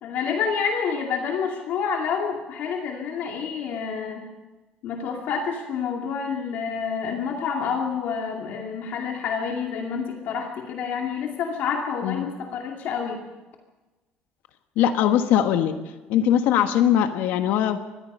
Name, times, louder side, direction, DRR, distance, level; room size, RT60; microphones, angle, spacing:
voice 1, 0.0-4.3 4.8-13.2, left 6 dB, 55° left, 1 dB, 2.4 m, -28 dB
voice 2, 14.8-15.8 16.1-17.8, left 10 dB, 70° left, 8 dB, 1.4 m, -21 dB
24.5 x 19.5 x 5.5 m, 1.2 s
cardioid pair, 165°, 4 cm